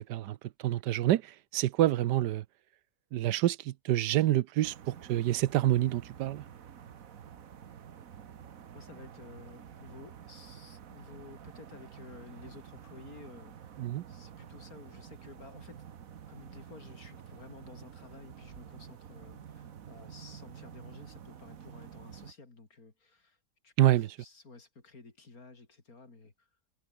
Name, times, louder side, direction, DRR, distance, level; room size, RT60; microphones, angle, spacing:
voice 1, 0.6-2.4 3.1-6.4 13.8-14.0 23.8-24.1, right 14 dB, 90° right, 1.3 m, -27 dB
sound 1, 4.6-22.3, right 8 dB, 60° right, 1.5 m, -49 dB
voice 2, 8.7-13.8 14.1-15.8 16.3-23.4 23.6-26.5, left 3 dB, 60° left, 3.8 m, -52 dB
omnidirectional pair, 1.7 m